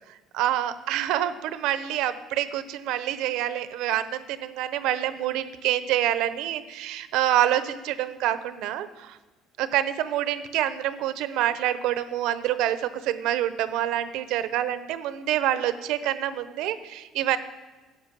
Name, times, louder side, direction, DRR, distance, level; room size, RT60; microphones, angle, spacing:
voice 1, 0.1-9.2 9.6-17.4, right 12 dB, 75° right, 12 dB, 0.9 m, -27 dB
13.0 x 7.9 x 7.5 m, 1.2 s
cardioid pair, 120°, 0 cm